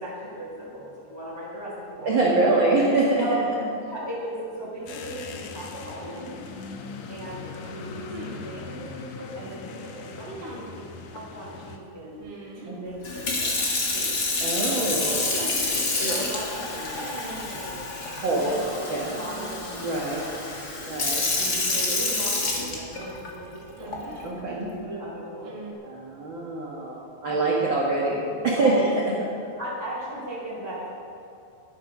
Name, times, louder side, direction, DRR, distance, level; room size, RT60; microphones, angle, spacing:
voice 1, 0.0-2.8 3.2-3.4 3.8-6.3 7.1-8.0 8.3-12.2 12.5-14.1 14.6-17.8 18.2-20.9 21.4-24.0 24.5-25.7 27.3-27.6 28.0-28.1 28.5-28.8 29.2-30.9, right 1 dB, 5° left, -5 dB, 2.7 m, -37 dB
voice 2, 2.0-3.2 12.7-12.8 14.4-15.3 15.7-16.3 18.2-18.5 18.9-19.1 19.8-20.2 20.9-21.2 24.2-24.7 25.8-28.7, right 3 dB, 50° right, -4 dB, 1.5 m, -25 dB
sound 1, 4.9-11.8, left 5 dB, 80° left, 1.6 m, -40 dB
sound 2, 6.0-6.1 8.0-8.5 10.3-10.7 12.2-12.8 15.3-15.8 17.0-17.6 19.1-19.7 20.0-20.1 21.9-22.9 23.8-24.4 25.4-25.7, right 2 dB, 90° right, 4.7 m, -41 dB
Sink (filling or washing) / Fill (with liquid), 13.0-23.3 23.9-24.2, left 3 dB, 40° left, 1.5 m, -28 dB
12.0 x 12.0 x 6.1 m, 2.7 s
omnidirectional pair, 4.6 m